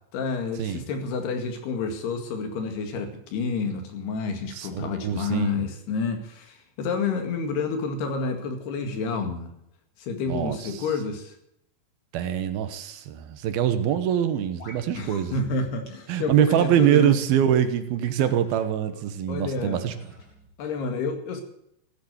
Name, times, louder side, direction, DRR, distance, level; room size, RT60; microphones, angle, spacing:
voice 1, 0.1-9.5 10.0-11.3 15.0-17.2 19.3-19.8 20.6-21.4, left 4 dB, 75° left, 6 dB, 4.0 m, -29 dB
voice 2, 4.5-5.6 10.3-10.8 12.1-15.3 16.1-19.9, right 10 dB, 70° right, 9 dB, 2.8 m, -24 dB
sound 1, 14.6-14.8 15.1-15.2 15.9-16.0 16.5-17.0 18.2-18.7 19.8-20.5, left 1 dB, 30° left, 4.5 m, -46 dB
16.0 x 10.5 x 8.0 m, 0.78 s
omnidirectional pair, 4.8 m